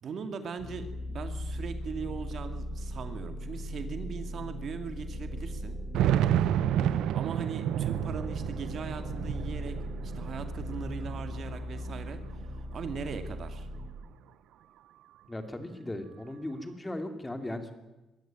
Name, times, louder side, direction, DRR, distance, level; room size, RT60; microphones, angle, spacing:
voice 1, 0.0-5.8 6.9-9.8 10.0-12.2 12.7-13.7, right 6 dB, 60° right, 8 dB, 2.3 m, -39 dB
sound 1, 0.6-13.9, equal, 40° left, 5.7 m, -39 dB
sound 2, 2.0-2.1 2.3-2.4 3.3-3.4 3.8-3.9 5.6-12.0 12.4-13.3, right 11 dB, 85° right, 0.7 m, -30 dB
voice 2, 15.3-17.7, left 1 dB, 15° left, 7 dB, 3.0 m, -37 dB
22.5 x 13.5 x 9.0 m, 1.1 s
cardioid pair, 90°, 0 cm